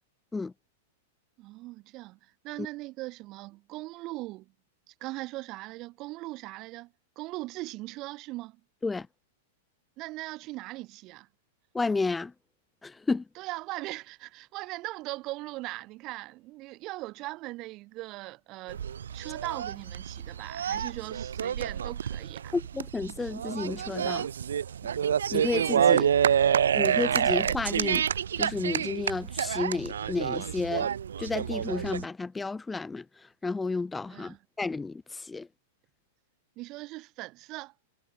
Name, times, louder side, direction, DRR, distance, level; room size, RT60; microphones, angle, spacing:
voice 1, 1.4-4.5 4.9-8.6 10.0-11.3 13.4-18.8 19.1-22.5 26.0-26.1 34.1-34.4 36.6-37.7, right 20 dB, 40° right, 2.2 m, -39 dB
voice 2, 11.7-12.3 12.8-13.2 22.5-24.3 25.3-26.1 26.7-30.9 31.2-35.5, left 3 dB, 10° left, 1.8 m, -32 dB
sound 1, 18.7-32.0, right 8 dB, 90° right, 0.5 m, -28 dB
hypercardioid pair, 130°, 0 cm